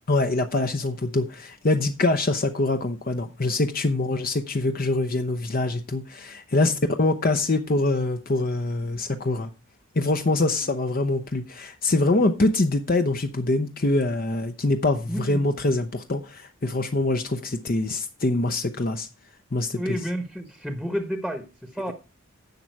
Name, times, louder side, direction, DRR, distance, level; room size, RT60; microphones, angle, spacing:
voice 1, 0.1-9.5 9.9-19.1 19.5-20.1, left 2 dB, 45° left, 0.7 m, -24 dB
voice 2, 10.4-10.9 15.1-15.6 19.7-21.9, equal, 5° left, 1.0 m, -32 dB
10.5 x 7.4 x 4.6 m
head